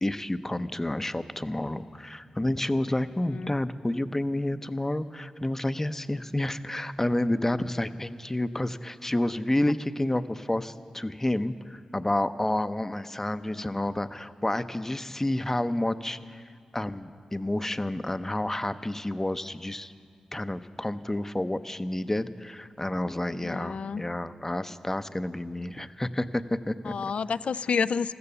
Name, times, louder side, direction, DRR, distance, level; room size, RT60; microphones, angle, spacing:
voice 1, 0.0-19.9 20.3-26.9, left 1 dB, 20° left, 11 dB, 0.7 m, -30 dB
voice 2, 23.4-24.0 26.9-28.1, left 6 dB, 70° left, 15 dB, 0.4 m, -29 dB
14.5 x 14.0 x 6.9 m, 2.2 s
cardioid pair, 45°, 2 cm